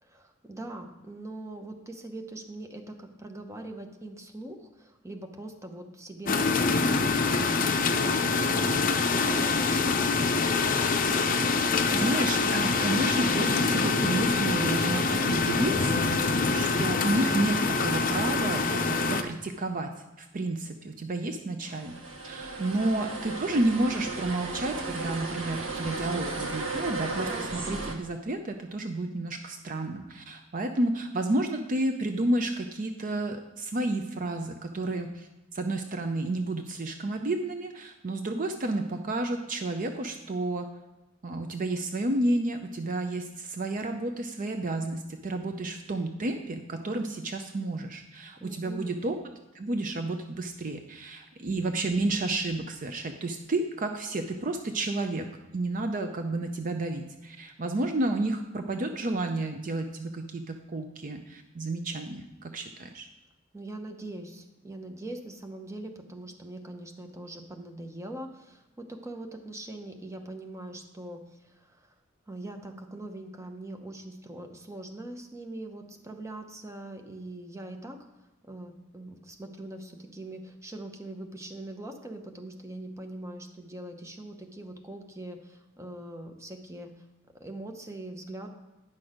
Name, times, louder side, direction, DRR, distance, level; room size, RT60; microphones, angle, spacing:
voice 1, 0.0-10.3 22.6-22.7 48.4-49.0 63.5-71.9 72.3-78.0 78.4-87.0 87.3-88.5, right 1 dB, 15° right, 4 dB, 0.8 m, -42 dB
sound 1, 6.3-19.2, left 4 dB, 45° left, 0.6 m, -25 dB
voice 2, 11.4-19.9 20.2-21.9 22.3-40.7 41.2-49.2 49.5-55.3 55.5-63.1, right 2 dB, 45° right, 6 dB, 0.5 m, -31 dB
sound 2, 21.6-27.9, right 3 dB, 85° right, 1.3 m, -35 dB
9.7 x 6.1 x 5.0 m, 1.0 s
head